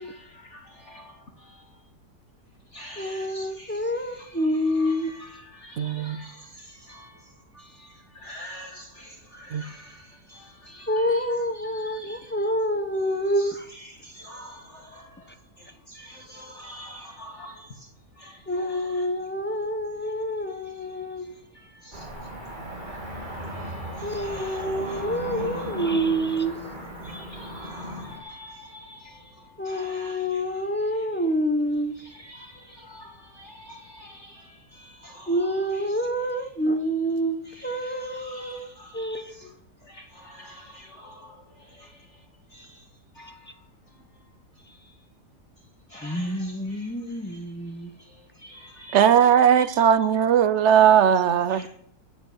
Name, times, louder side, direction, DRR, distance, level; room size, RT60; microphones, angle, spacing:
voice 1, 0.0-1.8 2.7-11.3 11.6-12.4 13.4-17.9 18.2-19.1 20.8-22.3 22.9-25.7 27.0-30.6 30.9-31.1 32.0-36.0 37.5-39.5 39.8-42.3 42.5-42.9 43.1-44.0 44.6-45.0 45.9-47.4 48.0-49.9 51.5-51.7, equal, 45° left, 1.6 m, -47 dB
voice 2, 3.0-5.1 10.9-13.7 18.5-21.3 24.0-26.6 29.6-32.0 35.3-39.6 46.0-47.9, equal, 15° left, 0.4 m, -27 dB
voice 3, 5.8-6.2 9.5-9.6 48.9-51.6, right 9 dB, 65° right, 0.7 m, -18 dB
Cricket / Motor vehicle (road), 21.9-28.2, equal, 25° right, 3.0 m, -36 dB
9.8 x 8.9 x 8.5 m
omnidirectional pair, 1.9 m